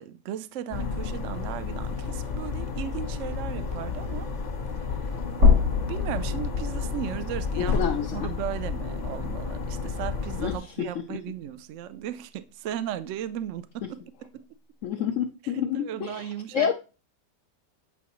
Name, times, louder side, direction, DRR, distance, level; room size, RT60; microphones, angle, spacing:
voice 1, 0.0-4.3 5.9-14.4 15.4-16.7, right 11 dB, 70° right, 0.7 m, -36 dB
sound 1, 0.7-10.6, left 4 dB, 35° left, 0.7 m, -31 dB
sound 2, 5.4-9.6 9.9-10.0 11.4-11.5, left 4 dB, 55° right, 3.8 m, -26 dB
voice 2, 7.5-8.3 10.4-11.2 14.8-16.7, left 9 dB, 80° left, 0.7 m, -29 dB
8.4 x 5.6 x 2.9 m
omnidirectional pair, 1.8 m